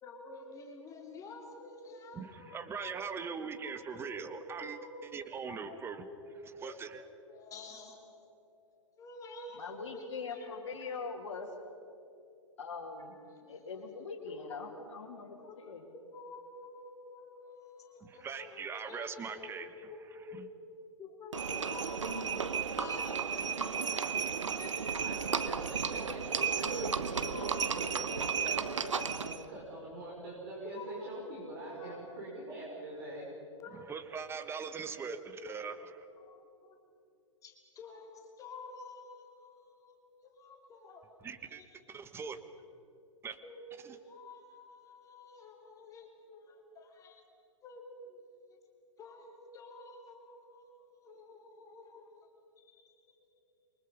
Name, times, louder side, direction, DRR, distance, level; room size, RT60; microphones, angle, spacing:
voice 1, 0.0-5.0 5.4-6.8 7.3-8.3 9.0-11.9 12.3-12.4 13.0-13.3 14.3-14.4 15.4-20.6 21.0-24.8 26.0-26.3 26.7-28.5 30.6-32.2 33.5-35.6 36.2-36.8 37.4-40.0 40.4-41.0 41.5-41.7 43.4-47.2 47.6-48.2 49.0-52.3 52.6-53.2, left 3 dB, 20° left, 1 dB, 2.9 m, -50 dB
voice 2, 2.1-6.1 6.6-7.0 18.0-20.5 33.7-36.0 41.2-41.6 41.9-42.4 43.2-43.4 43.8-44.0, right 6 dB, 15° right, 10 dB, 1.3 m, -41 dB
voice 3, 9.5-11.5 12.6-13.2 13.5-15.9, left 4 dB, 60° left, -3 dB, 3.1 m, -42 dB
Livestock farm animals working animals, 21.3-29.4, right 6 dB, 70° right, 1.1 m, -33 dB
voice 4, 24.9-33.3, right 1 dB, 45° right, -4 dB, 5.6 m, -44 dB
28.0 x 23.5 x 5.4 m, 2.6 s
figure-of-eight pair, 110°, 16 cm